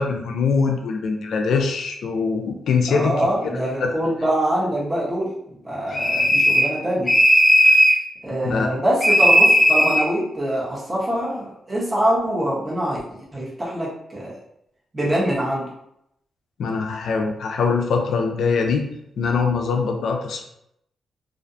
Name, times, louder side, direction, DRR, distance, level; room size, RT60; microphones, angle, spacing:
voice 1, 0.0-3.3 3.8-3.9 7.6-7.8 8.4-8.7 16.6-18.8 19.2-20.5, left 5 dB, 75° left, 3 dB, 0.4 m, -22 dB
voice 2, 2.9-5.3 5.6-7.1 8.2-14.3 14.9-15.7, right 1 dB, 25° right, -6 dB, 1.0 m, -24 dB
sound 1, 5.9-6.8 7.1-8.0 9.0-10.1, equal, 20° left, 0.5 m, -15 dB
2.4 x 2.2 x 2.6 m, 0.77 s
cardioid pair, 85°, 0 cm